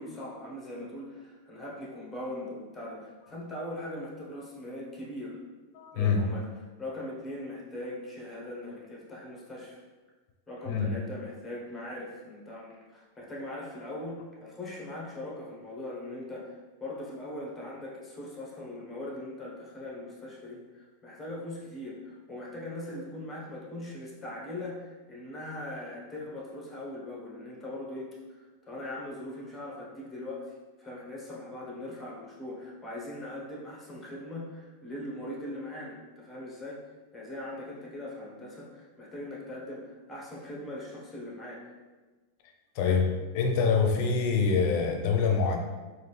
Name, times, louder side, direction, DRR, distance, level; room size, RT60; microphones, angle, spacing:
voice 1, 0.0-5.4 5.9-6.5 6.8-9.8 10.5-28.1 28.4-30.5 30.8-36.8 37.1-41.6 42.8-43.0, left 1 dB, 10° left, -4 dB, 1.2 m, -40 dB
voice 2, 5.7-6.2 10.7-10.9 42.7-43.1 43.3-45.6, left 5 dB, 55° left, 3 dB, 0.7 m, -25 dB
3.9 x 2.7 x 3.3 m, 1.3 s
hypercardioid pair, 120°, 0 cm